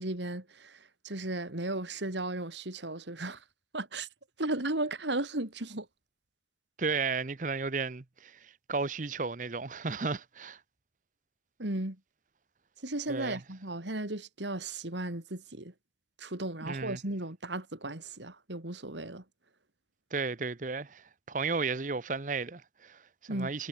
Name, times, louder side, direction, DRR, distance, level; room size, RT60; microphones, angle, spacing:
voice 1, 0.0-3.4 3.7-4.1 4.4-5.9 11.6-12.0 12.8-15.7 16.2-19.2 23.3-23.7, right 2 dB, 85° right, 3.2 m, -35 dB
voice 2, 6.8-10.6 13.1-13.4 16.6-17.0 20.1-23.7, right 4 dB, 45° right, 0.8 m, -34 dB
head